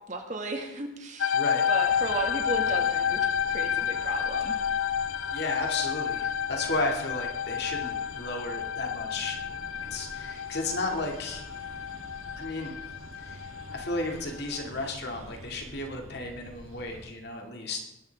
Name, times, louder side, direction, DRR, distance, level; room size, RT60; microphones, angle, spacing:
voice 1, 0.1-1.4 1.7-3.2 3.5-4.6, right 2 dB, 35° right, 3 dB, 1.8 m, -34 dB
sound 1, 1.2-14.7, left 8 dB, 75° left, 0.5 m, -30 dB
voice 2, 1.3-1.7 5.3-9.4 9.9-11.4 12.4-12.8 13.2-13.4 13.7-17.8, left 2 dB, 50° left, 2 dB, 2.2 m, -33 dB
sound 2, 1.9-17.1, right 1 dB, 85° right, 1.6 m, -48 dB
20.5 x 11.0 x 3.5 m, 0.87 s
head